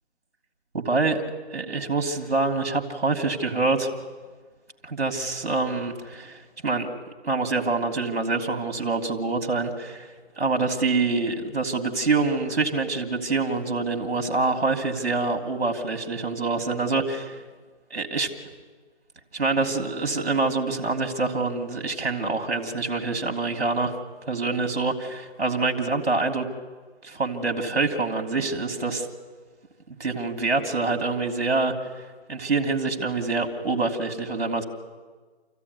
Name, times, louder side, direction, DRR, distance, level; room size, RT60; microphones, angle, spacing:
voice 1, 0.7-1.2 1.5-3.9 4.8-6.9 7.2-10.1 10.4-17.4 17.9-18.3 19.3-23.9 24.3-26.5 27.0-29.1 30.0-31.7 32.3-34.6, right 3 dB, 65° right, 3 dB, 3.0 m, -26 dB
28.5 x 15.0 x 9.6 m, 1.4 s
figure-of-eight pair, 180°, 34 cm